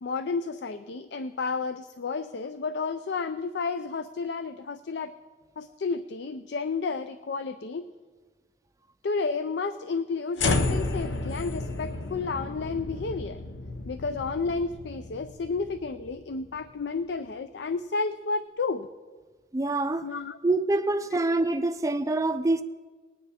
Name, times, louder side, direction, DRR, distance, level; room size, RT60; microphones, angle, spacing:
voice 1, 0.0-5.1 5.6-7.9 9.0-13.4 13.9-18.9 20.0-20.4, left 4 dB, 70° left, 0.4 m, -31 dB
sound 1, 10.4-16.7, left 3 dB, 85° left, 0.8 m, -32 dB
voice 2, 19.5-20.1 20.4-22.6, right 2 dB, 15° right, 0.4 m, -25 dB
19.5 x 9.3 x 4.2 m
head